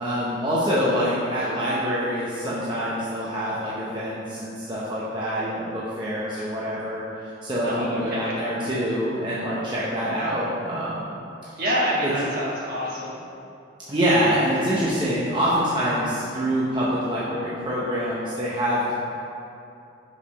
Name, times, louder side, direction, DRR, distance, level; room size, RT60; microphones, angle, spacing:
voice 1, 0.0-7.0 7.4-11.1 12.0-12.1 13.9-18.9, equal, 25° right, -8 dB, 0.8 m, -25 dB
voice 2, 7.6-8.4 11.6-13.2, equal, 50° right, -6 dB, 1.6 m, -27 dB
5.3 x 4.9 x 5.1 m, 2.7 s
head